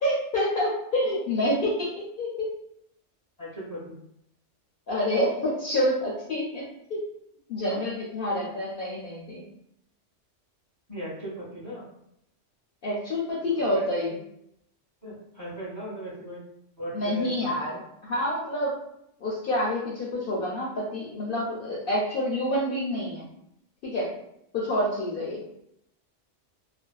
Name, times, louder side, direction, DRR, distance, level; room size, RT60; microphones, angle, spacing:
voice 1, 0.0-2.5 4.9-7.0 7.5-9.4 12.8-14.2 16.9-18.7 19.2-23.3 23.8-24.1 24.5-25.4, left 1 dB, 60° left, -5 dB, 0.6 m, -28 dB
voice 2, 3.4-4.0 7.6-7.8 10.9-11.8 13.6-14.1 15.0-16.4 16.8-17.6, equal, 15° right, -8 dB, 0.7 m, -38 dB
2.4 x 2.2 x 2.2 m, 0.77 s
omnidirectional pair, 1.3 m